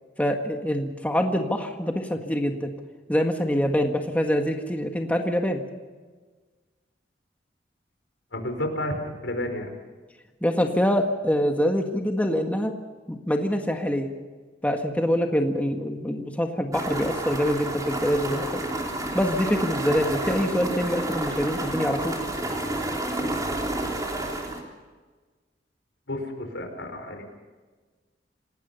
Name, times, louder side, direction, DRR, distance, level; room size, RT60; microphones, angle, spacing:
voice 1, 0.2-2.7 3.1-5.6 10.4-12.7 13.1-14.1 14.6-18.6 19.1-22.1, equal, 10° left, 3 dB, 1.6 m, -25 dB
voice 2, 8.3-9.7 26.1-27.2, left 1 dB, 85° left, 5 dB, 4.9 m, -31 dB
sound 1, 16.7-24.6, right 1 dB, 20° right, 3.5 m, -30 dB
27.0 x 19.0 x 5.5 m, 1.4 s
head